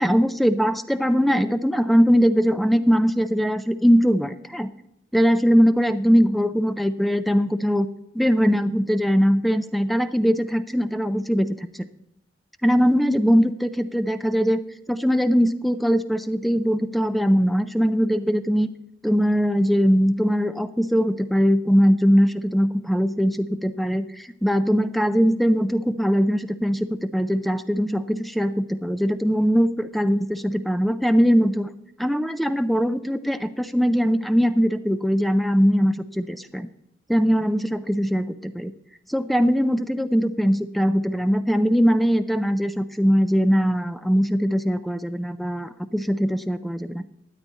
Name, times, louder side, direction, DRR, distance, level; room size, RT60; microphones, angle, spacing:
voice 1, 0.0-4.7 5.1-7.9 8.1-11.8 12.6-14.6 14.9-18.7 19.0-31.7 32.0-36.7 37.1-38.7 39.1-47.0, equal, ahead, 11 dB, 0.4 m, -21 dB
13.0 x 9.6 x 4.0 m, 0.84 s
head